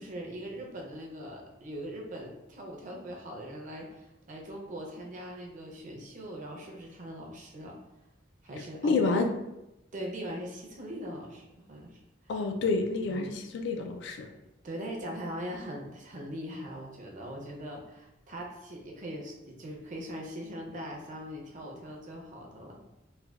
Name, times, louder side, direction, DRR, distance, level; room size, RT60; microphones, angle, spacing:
voice 1, 0.0-7.8 8.4-9.1 9.9-12.0 12.2-12.5 13.1-13.4 14.6-22.8, equal, 40° right, 0 dB, 0.5 m, -41 dB
voice 2, 8.8-9.3 12.3-14.3, left 3 dB, 65° left, 5 dB, 0.3 m, -28 dB
3.2 x 2.1 x 2.3 m, 0.92 s
head